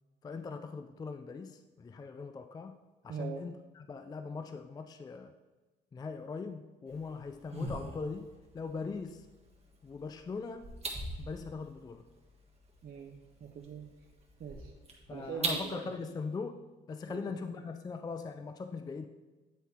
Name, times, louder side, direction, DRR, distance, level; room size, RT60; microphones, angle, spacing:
voice 1, 0.2-2.7 3.0-5.3 5.9-8.3 8.5-9.3 9.8-10.7 11.2-12.0 15.1-16.6 16.9-19.1, left 4 dB, 20° left, 8 dB, 0.3 m, -40 dB
voice 2, 3.1-3.4 12.8-13.9 14.4-14.7 15.1-15.9 17.1-17.2, right 7 dB, 55° right, 1 dB, 0.7 m, -42 dB
sound 1, 6.9-15.7, right 2 dB, 30° right, 1.5 m, -43 dB
9.1 x 3.5 x 4.1 m, 1.2 s
cardioid pair, 90°, 20 cm